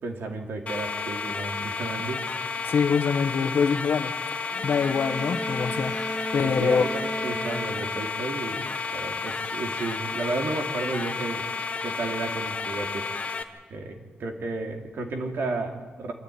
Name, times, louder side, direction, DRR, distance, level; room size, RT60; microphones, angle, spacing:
voice 1, 0.0-2.3 6.4-8.7 8.9-11.5 11.8-13.1 13.7-16.1, right 3 dB, 85° right, 3 dB, 3.0 m, -32 dB
sound 1, 0.7-13.4, left 4 dB, 35° left, 1.3 m, -32 dB
voice 2, 2.6-4.1 4.6-6.9, left 6 dB, 65° left, 9 dB, 1.3 m, -24 dB
Bowed string instrument, 4.5-8.2, equal, 20° right, 2.9 m, -34 dB
25.5 x 13.5 x 9.6 m, 1.4 s
wide cardioid pair, 170°, 4 cm